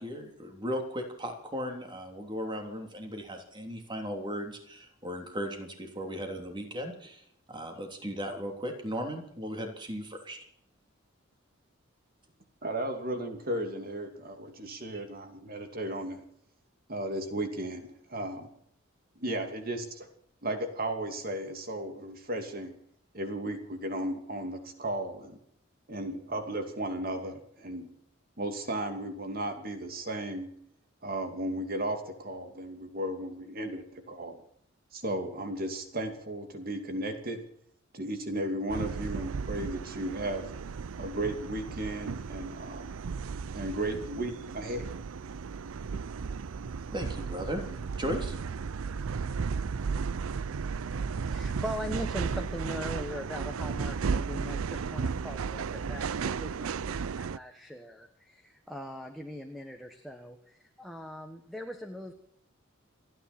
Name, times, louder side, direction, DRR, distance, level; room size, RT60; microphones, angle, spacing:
voice 1, 0.0-10.4 46.9-47.6 48.0-48.4, equal, 25° right, 3 dB, 3.3 m, -36 dB
voice 2, 12.6-16.2 16.9-18.5 19.2-20.1 20.4-22.7 23.1-25.4 25.9-27.9 28.4-30.5 31.0-34.4 34.9-37.4 37.9-40.4 41.0-42.9 43.5-44.9, right 1 dB, 45° right, 6 dB, 2.7 m, -35 dB
sound 1, 38.7-57.4, right 5 dB, 85° right, 0.5 m, -34 dB
voice 3, 50.9-62.1, equal, ahead, 2 dB, 1.4 m, -41 dB
29.0 x 10.0 x 4.4 m, 0.69 s
head